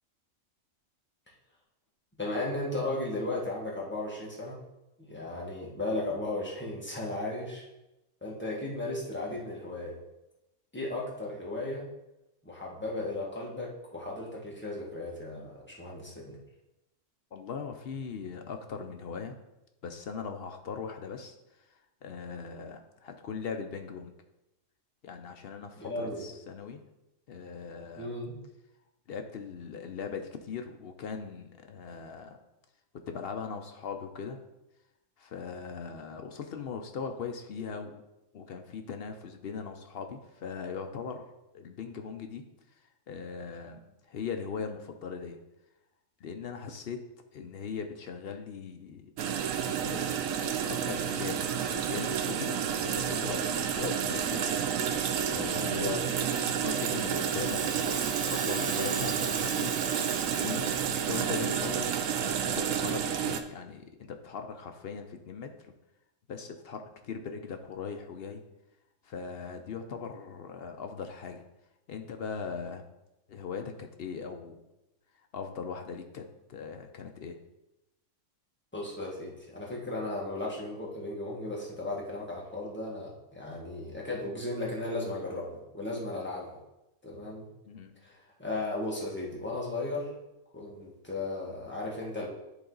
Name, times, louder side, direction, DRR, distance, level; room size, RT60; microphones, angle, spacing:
voice 1, 2.2-4.6 5.0-7.6 8.2-10.0 10.7-11.9 12.4-16.4 25.8-26.3 28.0-28.4 55.6-56.1 78.7-85.5 85.7-86.6 87.0-87.5 88.0-90.1 90.5-92.3, left 2 dB, 10° left, -4 dB, 1.5 m, -35 dB
voice 2, 17.3-19.4 19.8-21.4 22.0-24.1 25.0-26.8 27.3-28.1 29.1-32.4 33.1-34.4 35.2-38.1 38.3-41.2 41.5-42.4 43.1-45.4 46.2-47.0 47.3-49.1 49.8-51.4 51.7-54.5 55.3-56.0 56.5-59.8 60.3-61.9 62.4-65.7 66.3-68.4 69.0-71.4 71.9-72.8 73.3-74.6 75.3-77.4 87.2-87.3 87.7-87.9, left 6 dB, 60° left, 6 dB, 0.7 m, -39 dB
sound 1, 49.2-63.4, right 8 dB, 90° right, 1.0 m, -30 dB
sound 2, 56.2-62.4, right 5 dB, 65° right, 1.1 m, -41 dB
10.0 x 3.8 x 3.9 m, 0.94 s
omnidirectional pair, 1.4 m